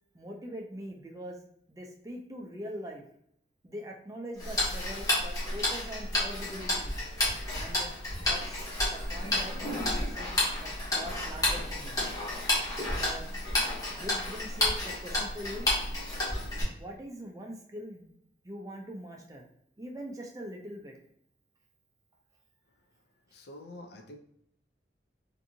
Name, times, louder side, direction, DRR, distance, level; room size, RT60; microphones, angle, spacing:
voice 1, 0.1-1.4 1.7-3.0 3.6-7.0 7.6-7.9 8.2-12.0 12.8-13.3 13.9-15.7 16.7-18.2 18.4-19.5 19.8-21.0, equal, 20° right, 0 dB, 0.4 m, -43 dB
Tick-tock, 4.4-16.6, left 1 dB, 20° left, 0.8 m, -31 dB
voice 2, 23.3-24.2, left 1 dB, 60° left, 4 dB, 0.4 m, -46 dB
2.6 x 2.5 x 2.6 m, 0.71 s
head